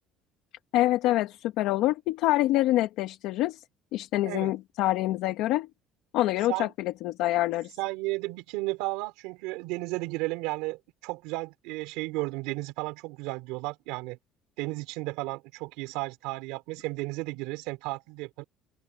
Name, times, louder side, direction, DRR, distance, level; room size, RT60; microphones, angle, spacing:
voice 1, 0.7-3.6 3.9-5.7 6.1-7.7, left 15 dB, 70° left, 1.5 m, -26 dB
voice 2, 7.8-14.2 14.6-18.4, right 22 dB, 90° right, 3.5 m, -33 dB
open air
cardioid pair, 140°, 0 cm